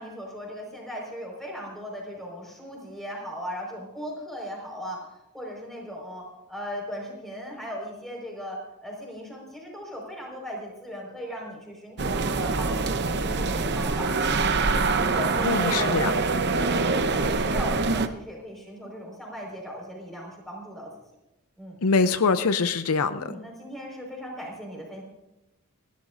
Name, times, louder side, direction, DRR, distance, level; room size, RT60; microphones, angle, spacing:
voice 1, 0.0-14.3 15.0-16.2 16.5-20.9 21.6-21.8 23.1-25.0, equal, ahead, -1 dB, 4.8 m, -37 dB
sound 1, 12.0-18.1, right 3 dB, 50° right, 0.8 m, -25 dB
voice 2, 15.4-16.1 21.8-23.3, left 4 dB, 70° left, 11 dB, 0.6 m, -23 dB
30.0 x 12.0 x 2.6 m, 0.95 s
head